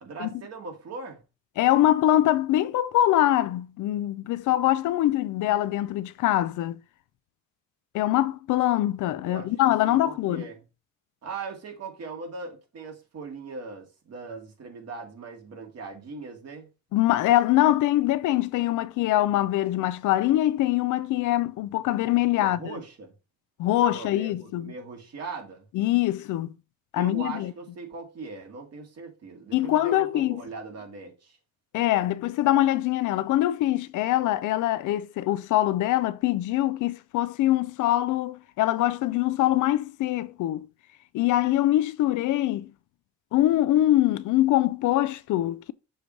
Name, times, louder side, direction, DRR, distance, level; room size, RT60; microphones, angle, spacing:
voice 1, 0.0-1.2 9.2-10.6 11.2-16.7 22.3-23.1 23.9-25.6 26.9-31.4, right 4 dB, 55° right, 2.1 m, -40 dB
voice 2, 1.6-6.8 7.9-10.5 16.9-22.8 23.6-24.7 25.7-26.5 26.9-27.5 29.5-30.4 31.7-40.7 41.1-42.7 43.3-45.7, left 14 dB, 80° left, 0.5 m, -23 dB
6.5 x 3.0 x 5.0 m
cardioid pair, 90°, 30 cm